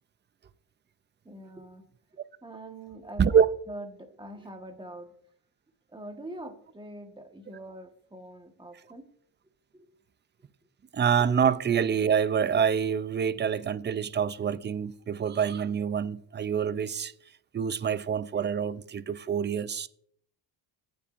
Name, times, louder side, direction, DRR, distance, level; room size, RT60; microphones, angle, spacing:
voice 1, 1.2-1.9 2.4-5.1 5.9-9.1 9.7-10.0, right 1 dB, 10° right, 1.3 m, -44 dB
voice 2, 10.9-17.1 17.5-19.9, right 7 dB, 25° right, 0.4 m, -26 dB
17.0 x 7.0 x 2.5 m
cardioid pair, 120°, 44 cm